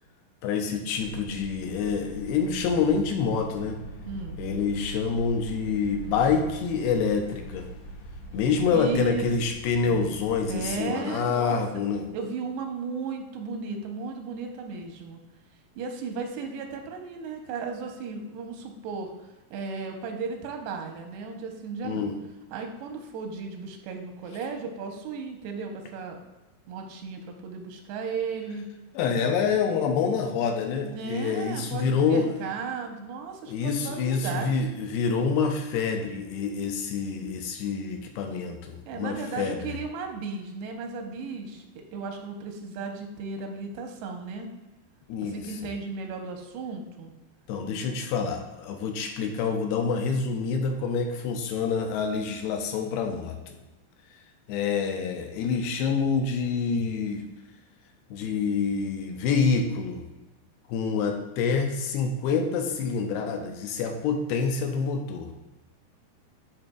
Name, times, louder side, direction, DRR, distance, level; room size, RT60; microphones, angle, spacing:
voice 1, 0.4-3.8 4.4-7.7 8.3-12.1 21.8-22.2 28.9-32.4 33.5-39.8 45.1-45.6 47.5-53.6 54.5-57.3 58.1-60.0 60.7-65.3, left 5 dB, 80° left, 4 dB, 2.5 m, -27 dB
sound 1, 1.0-10.8, right 2 dB, 65° left, 2.3 m, -41 dB
voice 2, 4.1-4.4 8.7-9.2 9.9-10.1 10.5-11.6 12.1-15.2 15.8-19.1 19.5-22.1 22.5-26.2 26.7-28.6 30.8-34.6 38.9-41.7 41.9-44.5 45.3-47.1, right 5 dB, 85° right, 4 dB, 2.9 m, -35 dB
10.5 x 4.2 x 2.3 m, 1.1 s
omnidirectional pair, 4.7 m